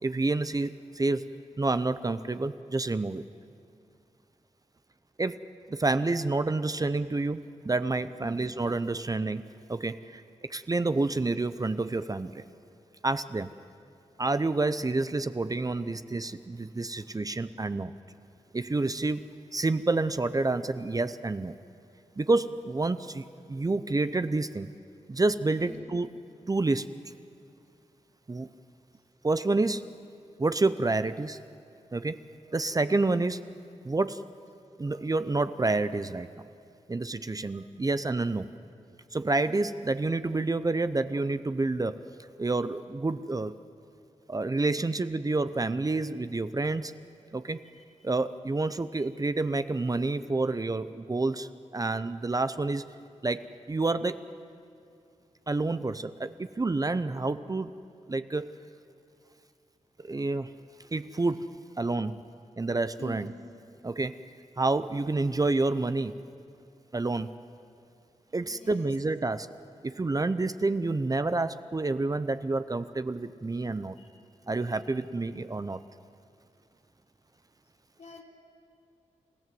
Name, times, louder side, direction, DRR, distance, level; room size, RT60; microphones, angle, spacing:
voice 1, 0.0-1.3 1.6-3.2 5.2-5.4 5.7-10.2 10.5-12.4 13.0-13.5 14.2-17.9 18.5-19.2 19.5-21.5 22.2-24.7 25.1-26.1 26.5-26.9 28.3-28.5 29.2-29.9 30.4-31.4 31.9-32.2 32.5-33.4 33.8-34.2 34.8-36.3 36.9-38.5 39.1-42.0 42.4-43.5 44.3-46.9 47.3-47.6 48.0-52.8 53.2-53.4 53.7-54.2 55.5-57.7 58.1-58.5 60.0-60.5 60.9-61.4 61.8-62.2 62.6-63.3 63.8-64.1 64.6-66.1 66.9-67.3 68.3-69.5 69.8-74.0 74.5-75.8, right 3 dB, 30° right, 12 dB, 0.7 m, -28 dB
voice 2, 10.9-11.3 25.6-25.8 63.0-63.3 68.5-68.9 74.0-74.1 74.6-74.7 78.0-78.2, left 1 dB, 65° left, -2 dB, 4.1 m, -46 dB
28.0 x 15.5 x 7.8 m, 2.4 s
cardioid pair, 70°, 13 cm